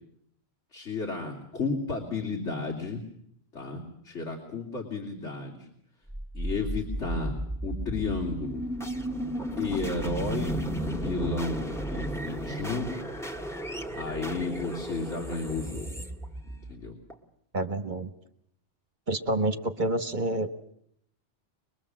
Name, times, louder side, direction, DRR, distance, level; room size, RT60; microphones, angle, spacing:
voice 1, 0.7-3.0 3.5-5.7 6.3-7.4 7.6-8.7 9.6-12.9 13.9-16.0 16.4-17.0, left 3 dB, 70° left, -1 dB, 3.1 m, -33 dB
sound 1, 6.1-17.1, right 1 dB, ahead, 1.7 m, -34 dB
voice 2, 17.5-18.1 19.1-20.5, right 1 dB, 40° right, 10 dB, 1.3 m, -28 dB
23.5 x 22.5 x 7.5 m, 0.70 s
omnidirectional pair, 1.2 m